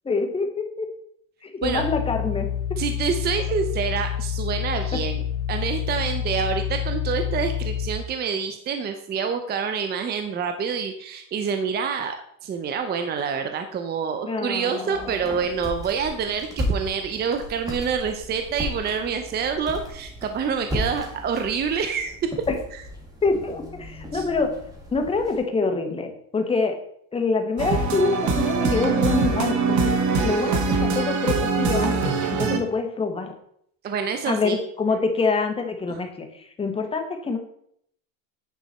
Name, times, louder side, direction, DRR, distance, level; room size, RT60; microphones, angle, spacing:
voice 1, 0.0-0.9 1.4-2.5 14.2-15.2 23.2-24.5 24.9-26.8 27.1-29.8 30.2-33.3 34.3-36.3 36.6-37.4, left 4 dB, 15° left, 4 dB, 1.1 m, -25 dB
sound 1, 1.6-7.9, left 9 dB, 55° left, 1.5 m, -28 dB
voice 2, 2.8-5.2 5.5-12.2 12.4-22.3 24.1-24.3 33.8-34.6 35.9-36.0, right 6 dB, 25° right, 7 dB, 0.6 m, -27 dB
sound 2, 14.9-25.4, left 1 dB, 10° right, 2.1 m, -35 dB
sound 3, 27.6-32.6, right 4 dB, 45° right, 1.3 m, -23 dB
9.3 x 4.8 x 4.2 m, 0.69 s
supercardioid pair, 130°, 40 cm